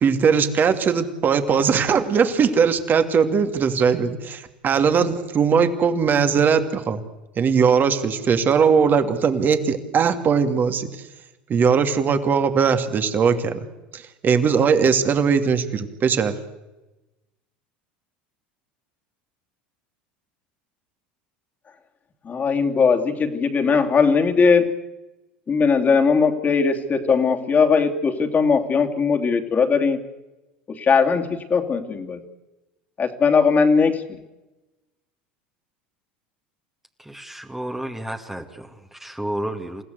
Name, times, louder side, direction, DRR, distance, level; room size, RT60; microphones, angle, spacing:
voice 1, 0.0-7.0 7.4-10.9 11.5-13.6 13.9-16.4, right 6 dB, 40° right, 8 dB, 2.7 m, -20 dB
voice 2, 22.2-24.7 25.5-30.0 30.7-32.2 33.0-34.0, left 5 dB, 30° left, 4 dB, 3.0 m, -19 dB
voice 3, 37.0-39.8, right 1 dB, 5° right, 4 dB, 2.2 m, -32 dB
28.5 x 16.0 x 8.2 m, 1.0 s
hypercardioid pair, 75°, 5 cm